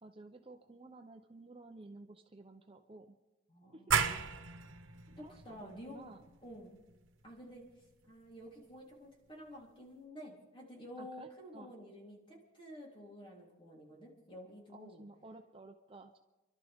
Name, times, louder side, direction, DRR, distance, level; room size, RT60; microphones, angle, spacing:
voice 1, 0.0-3.2 3.7-3.8 5.2-6.2 11.0-11.7 14.7-16.2, right 2 dB, 30° right, 5 dB, 0.7 m, -53 dB
voice 2, 3.5-4.4 5.2-6.1 6.4-6.7 7.2-7.6 8.1-15.1, equal, 25° left, -3 dB, 3.5 m, -51 dB
sound 1, 3.9-9.3, right 6 dB, 85° right, 1.1 m, -38 dB
29.5 x 12.0 x 3.6 m, 1.1 s
head